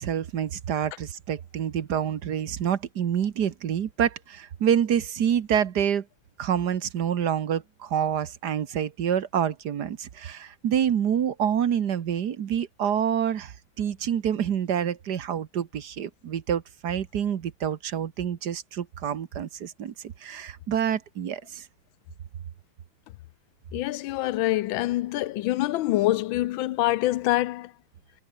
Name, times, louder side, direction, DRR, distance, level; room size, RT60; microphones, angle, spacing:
voice 1, 0.0-6.0 6.4-21.7, right 9 dB, 60° right, 1.6 m, -27 dB
voice 2, 23.7-27.7, left 16 dB, 85° left, 1.4 m, -25 dB
omnidirectional pair, 2.1 m